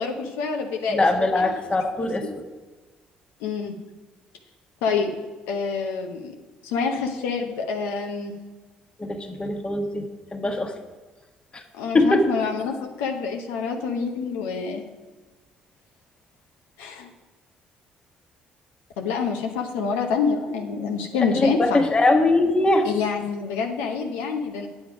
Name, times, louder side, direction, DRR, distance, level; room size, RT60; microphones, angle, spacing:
voice 1, 0.0-1.1 1.3-1.6 2.0-2.1 3.4-3.7 4.8-5.1 5.5-6.3 6.6-8.3 11.7-14.8 16.8-17.1 19.0-21.8 22.8-24.7, left 5 dB, 85° left, 3 dB, 0.8 m, -27 dB
voice 2, 0.9-2.4 9.0-10.7 11.5-11.6 11.9-12.3 21.2-22.9, left 2 dB, 30° left, 5 dB, 1.3 m, -21 dB
8.6 x 7.2 x 5.0 m, 1.3 s
supercardioid pair, 60°, 4 cm